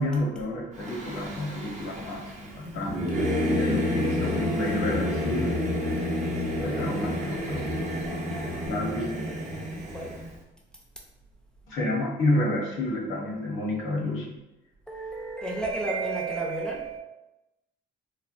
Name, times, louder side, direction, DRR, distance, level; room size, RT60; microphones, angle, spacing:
voice 1, 0.0-5.6 6.6-7.7 8.7-9.1 11.7-14.4, left 1 dB, 80° left, -3 dB, 0.9 m, -29 dB
Singing / Musical instrument, 0.8-10.3, left 1 dB, 35° right, 0.7 m, -29 dB
voice 2, 14.9-17.0, right 3 dB, 5° left, -3 dB, 0.5 m, -31 dB
3.2 x 2.1 x 2.5 m, 0.98 s
cardioid pair, 90°, 20 cm